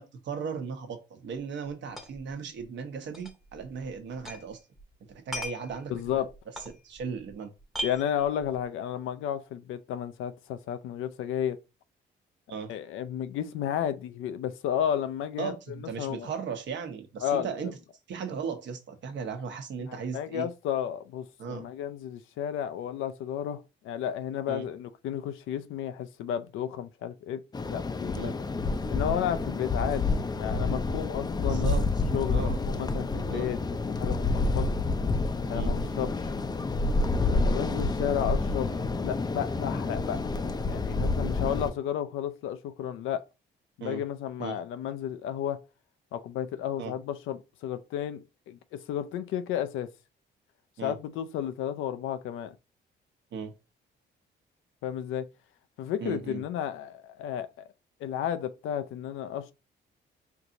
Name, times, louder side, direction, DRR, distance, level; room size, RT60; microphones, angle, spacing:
voice 1, 0.0-4.6 5.1-6.3 6.7-7.5 12.5-12.7 15.4-17.7 18.1-20.5 21.4-21.7 24.5-24.7 28.2-28.3 31.5-31.8 32.3-32.6 33.3-33.5 35.5-35.8 43.8-44.0 44.4-44.6 46.8-46.9 50.8-51.0 53.3-53.5 56.0-56.4, right 6 dB, 65° right, 0.9 m, -37 dB
sound 1, 2.0-2.3 2.6-2.7 3.1-4.5 4.8-7.3 7.6-8.6, equal, ahead, 0.8 m, -39 dB
voice 2, 5.9-6.3 7.8-11.6 12.5-16.3 17.2-17.5 19.9-27.4 27.7-28.3 28.9-30.0 30.3-31.7 32.1-34.7 35.5-36.3 37.1-38.7 39.0-40.3 40.6-43.2 43.8-45.6 46.1-49.9 50.8-52.6 54.8-55.2 55.8-57.5 58.0-59.5, left 10 dB, 85° left, 0.5 m, -32 dB
sound 2, 27.5-41.7, left 3 dB, 20° left, 0.4 m, -28 dB
4.5 x 2.8 x 2.6 m
cardioid pair, 90°, 20 cm